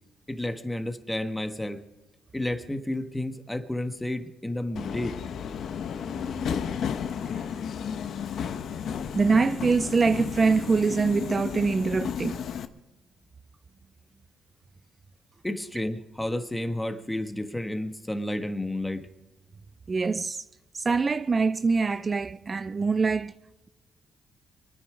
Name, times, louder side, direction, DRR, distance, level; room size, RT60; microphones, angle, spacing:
voice 1, 0.3-1.8 2.3-5.2 15.4-19.1, left 1 dB, 10° left, 1.5 m, -31 dB
Subway metro underground, 4.8-12.7, left 7 dB, 65° left, 1.0 m, -33 dB
voice 2, 9.1-12.5 19.9-20.5 20.7-23.4, right 4 dB, 30° right, 0.4 m, -24 dB
24.5 x 9.9 x 5.0 m
cardioid pair, 90°, 0 cm